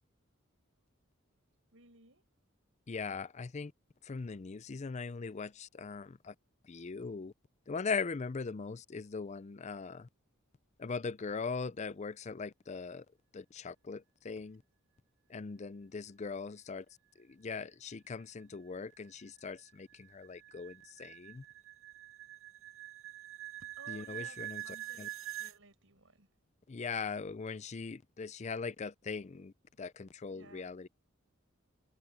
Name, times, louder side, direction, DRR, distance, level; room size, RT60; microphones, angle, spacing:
voice 1, 1.7-2.2 14.4-14.5 23.6-26.3 30.3-30.8, right 2 dB, 70° right, 6.1 m, -58 dB
voice 2, 2.9-3.7 4.0-6.3 6.6-7.3 7.7-10.1 10.8-13.1 13.3-14.6 15.3-16.9 17.2-21.4 23.9-25.1 26.7-30.9, left 4 dB, 35° left, 0.5 m, -40 dB
sound 1, 18.4-25.6, right 15 dB, 85° right, 2.1 m, -46 dB
head